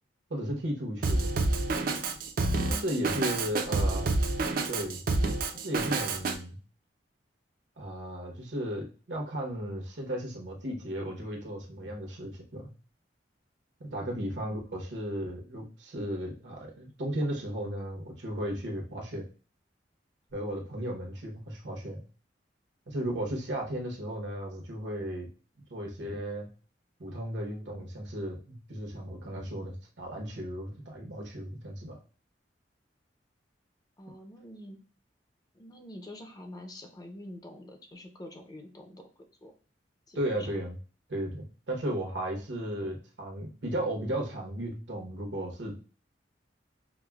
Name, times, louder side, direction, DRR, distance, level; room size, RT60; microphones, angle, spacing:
voice 1, 0.3-1.3 2.7-4.1 4.7-5.0 5.5-6.6 7.8-12.7 13.8-19.2 20.3-22.0 22.9-25.3 25.7-26.5 27.0-32.0 40.1-40.8 41.1-45.7, right 1 dB, 80° right, 1 dB, 0.9 m, -35 dB
Drum kit, 1.0-6.3, right 3 dB, 55° right, 0.4 m, -28 dB
voice 2, 3.5-4.0 14.4-14.6 34.0-34.8 35.5-39.5 40.1-40.5, left 1 dB, 20° left, 4 dB, 0.5 m, -47 dB
4.9 x 2.0 x 2.3 m, 0.37 s
head